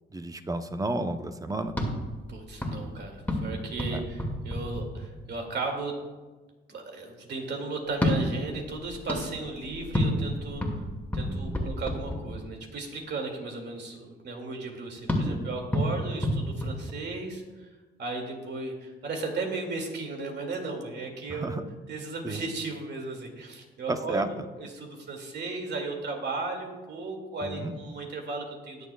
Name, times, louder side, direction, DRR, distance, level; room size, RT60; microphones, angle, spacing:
voice 1, 0.1-1.8 3.9-4.0 11.2-11.7 15.1-15.4 21.3-21.6 22.2-22.4 23.9-24.5 27.4-27.7, right 2 dB, 15° right, 9 dB, 0.7 m, -32 dB
sound 1, 1.7-5.5 7.9-12.7 15.1-17.5, left 1 dB, 10° left, 2.0 m, -31 dB
voice 2, 2.3-6.0 6.7-10.6 11.1-17.7 18.0-21.5 21.9-28.9, right 3 dB, 60° right, 2 dB, 2.2 m, -35 dB
20.0 x 7.2 x 2.3 m, 1.2 s
cardioid pair, 90°, 20 cm